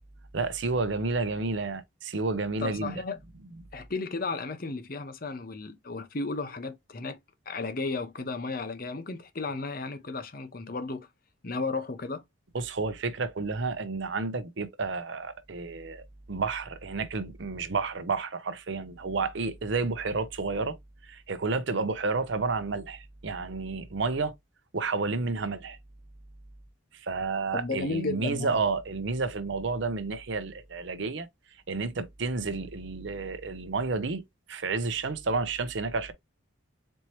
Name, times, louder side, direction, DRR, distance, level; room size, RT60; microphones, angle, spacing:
voice 1, 0.3-3.1 12.5-20.8 21.0-24.3 24.7-25.8 27.0-31.3 31.7-34.2 34.5-36.1, right 4 dB, 60° right, 0.6 m, -31 dB
voice 2, 2.6-3.2 3.7-7.2 7.5-11.1 11.4-12.2 27.5-28.6, left 3 dB, 45° left, 0.7 m, -34 dB
4.4 x 3.0 x 2.9 m
head